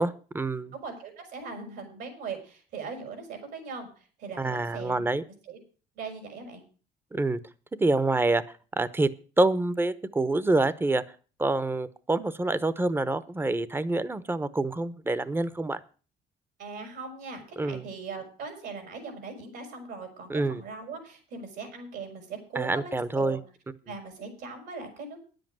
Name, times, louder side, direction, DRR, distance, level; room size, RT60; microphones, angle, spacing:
voice 1, 0.0-0.7 4.4-5.2 7.1-7.4 7.8-8.4 8.8-9.1 9.4-11.0 11.4-15.8 17.6-17.9 20.3-20.6 22.5-23.4, right 2 dB, 15° right, 16 dB, 0.8 m, -26 dB
voice 2, 0.7-5.0 5.5-5.6 5.9-6.6 16.6-23.4 23.9-25.2, right 4 dB, 75° right, 5 dB, 5.0 m, -40 dB
10.0 x 7.8 x 7.5 m, 0.38 s
cardioid pair, 110°, 17 cm